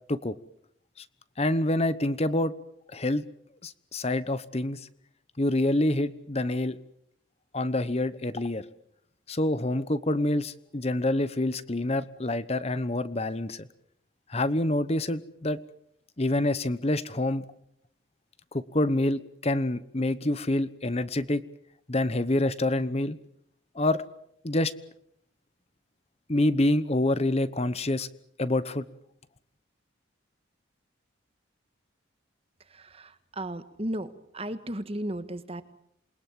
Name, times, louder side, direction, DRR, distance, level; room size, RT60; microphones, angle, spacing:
voice 1, 1.4-2.5 2.9-3.2 3.6-4.8 5.4-6.8 7.5-8.6 9.3-13.7 14.3-15.6 16.2-17.4 18.5-21.4 21.9-23.2 23.7-24.0 24.4-24.7 26.3-28.1 28.4-28.8, left 1 dB, 30° left, 14 dB, 1.0 m, -27 dB
voice 2, 32.7-35.6, right 1 dB, 30° right, 11 dB, 1.6 m, -35 dB
28.0 x 21.5 x 7.5 m, 0.72 s
head